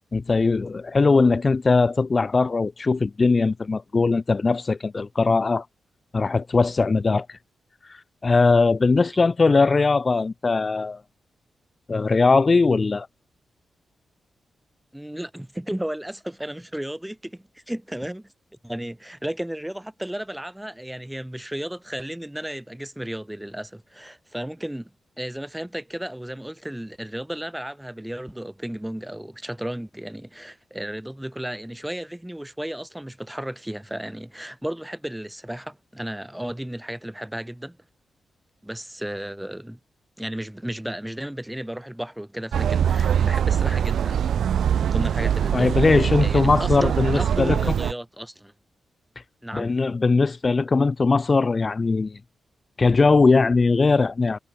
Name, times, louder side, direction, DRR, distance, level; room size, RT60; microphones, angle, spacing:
voice 1, 0.1-5.6 6.1-7.4 8.2-11.0 11.9-13.1 45.5-47.6 49.5-52.2 52.8-54.4, left 4 dB, 30° left, 1.3 m, -20 dB
voice 2, 14.9-18.3 18.6-24.9 25.2-37.8 38.6-39.8 40.2-44.3 44.8-48.5 49.4-49.7, right 1 dB, 5° right, 5.7 m, -34 dB
sound 1, 42.5-47.9, right 9 dB, 80° right, 0.3 m, -23 dB
wide cardioid pair, 135°, 0 cm